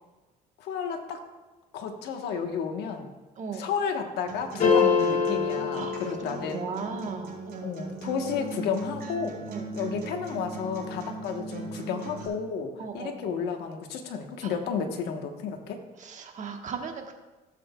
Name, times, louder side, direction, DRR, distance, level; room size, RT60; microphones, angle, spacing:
voice 1, 0.6-1.2 1.7-3.1 3.5-6.6 7.6-9.4 9.7-15.8, left 6 dB, 80° left, 4 dB, 1.2 m, -32 dB
voice 2, 3.4-3.7 5.7-6.0 6.2-7.8 9.5-9.7 12.8-13.4 14.4-14.5 16.0-17.1, right 5 dB, 45° right, 4 dB, 1.3 m, -37 dB
Acoustic guitar, 4.3-12.3, right 3 dB, 65° right, 3.5 m, -39 dB
sound 1, 4.6-6.9, left 5 dB, 55° left, 2.6 m, -25 dB
15.5 x 7.7 x 2.3 m, 1.1 s
cardioid pair, 110°, 17 cm